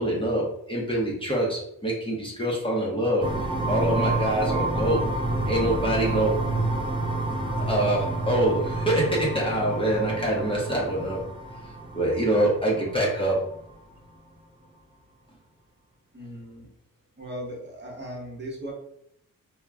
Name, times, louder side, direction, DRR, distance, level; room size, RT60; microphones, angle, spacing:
voice 1, 0.0-3.3 3.6-5.1 5.5-6.6 7.6-11.2 11.9-13.4, right 1 dB, 15° left, -4 dB, 0.7 m, -25 dB
sound 1, 3.2-13.7, right 2 dB, 15° right, 0.4 m, -29 dB
voice 2, 16.1-16.7 17.2-18.7, equal, 30° right, -3 dB, 0.9 m, -37 dB
2.3 x 2.1 x 3.4 m, 0.71 s
cardioid pair, 60°, 35 cm